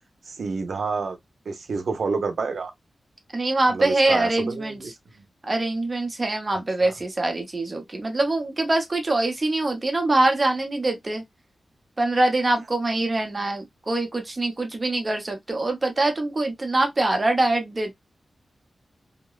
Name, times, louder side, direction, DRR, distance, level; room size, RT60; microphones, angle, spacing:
voice 1, 0.2-1.2 1.5-2.7 3.7-5.2 6.5-6.9, right 4 dB, 80° right, 0.6 m, -29 dB
voice 2, 3.3-4.8 5.4-11.2 12.0-17.9, right 2 dB, 30° right, 0.7 m, -24 dB
2.8 x 2.0 x 2.3 m
wide cardioid pair, 150°, 0 cm